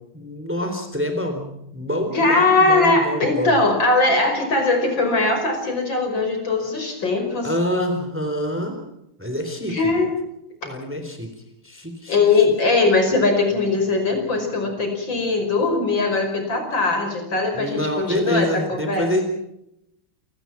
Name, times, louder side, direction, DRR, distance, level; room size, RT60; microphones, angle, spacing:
voice 1, 0.1-3.6 7.4-8.8 9.2-9.9 10.6-11.3 11.6-12.2 17.6-19.2, left 1 dB, 5° right, 5 dB, 3.7 m, -26 dB
voice 2, 2.1-7.5 9.7-10.1 12.1-19.2, left 3 dB, 55° left, 4 dB, 6.0 m, -20 dB
29.0 x 19.0 x 5.9 m, 0.80 s
omnidirectional pair, 2.4 m